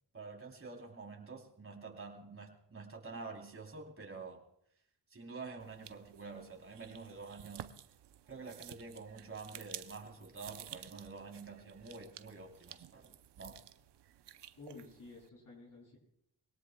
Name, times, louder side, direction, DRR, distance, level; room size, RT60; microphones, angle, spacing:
voice 1, 0.1-4.4 5.1-7.7 8.3-13.6, right 4 dB, 30° right, 1 dB, 3.3 m, -48 dB
sound 1, 5.6-15.3, right 12 dB, 85° right, 0.7 m, -53 dB
voice 2, 14.6-16.0, left 3 dB, 50° left, -3 dB, 6.9 m, -52 dB
24.0 x 18.0 x 2.2 m, 0.75 s
cardioid pair, 65°, 40 cm